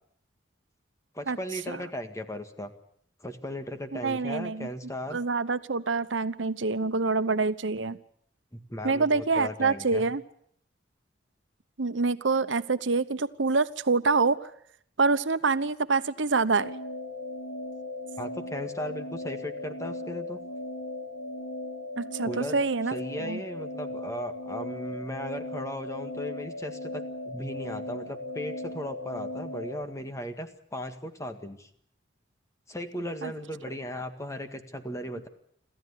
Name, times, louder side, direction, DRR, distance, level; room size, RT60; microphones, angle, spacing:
voice 1, 1.1-2.7 3.2-5.2 8.5-10.1 18.2-20.4 22.2-22.6 22.9-31.7 32.7-35.3, equal, 15° left, 7 dB, 1.9 m, -37 dB
voice 2, 3.9-4.7 5.1-8.0 8.8-10.2 11.8-14.4 15.0-16.7 22.0-22.9 23.2-23.4 33.2-33.3, right 4 dB, 90° right, 13 dB, 1.0 m, -26 dB
sound 1, 16.6-29.8, left 2 dB, 90° left, 3.9 m, -37 dB
27.0 x 14.5 x 9.7 m, 0.68 s
head